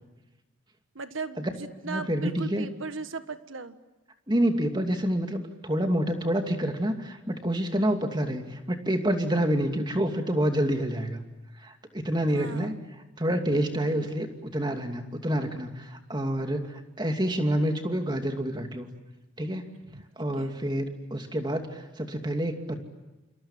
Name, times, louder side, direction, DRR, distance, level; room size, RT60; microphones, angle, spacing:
voice 1, 0.9-3.8 12.3-12.8 13.9-14.1 19.9-20.0 20.4-20.5, right 4 dB, 85° right, 10 dB, 1.6 m, -37 dB
voice 2, 1.8-2.7 4.3-11.2 11.6-12.7 13.2-18.9 19.4-19.7 20.2-22.8, right 1 dB, 20° right, 5 dB, 2.6 m, -28 dB
29.0 x 27.0 x 7.4 m, 1.1 s
head